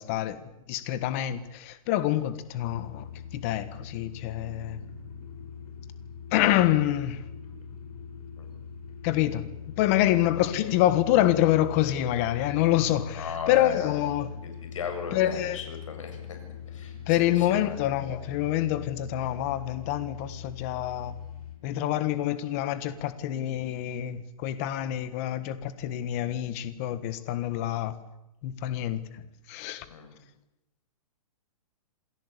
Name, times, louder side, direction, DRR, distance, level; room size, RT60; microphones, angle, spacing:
voice 1, 0.0-4.9 6.3-7.2 9.0-9.5 9.8-14.3 15.1-15.6 17.1-21.1 21.6-27.9 28.4-29.2 29.5-29.8, left 13 dB, 25° left, 1.4 m, -26 dB
sound 1, 2.6-21.6, left 8 dB, 80° left, 7.3 m, -42 dB
voice 2, 13.1-14.0 14.7-16.2 16.7-16.9 17.5-17.8 29.9-30.1, left 6 dB, 60° left, 7.3 m, -35 dB
27.5 x 18.0 x 8.4 m
hypercardioid pair, 175°, 19 cm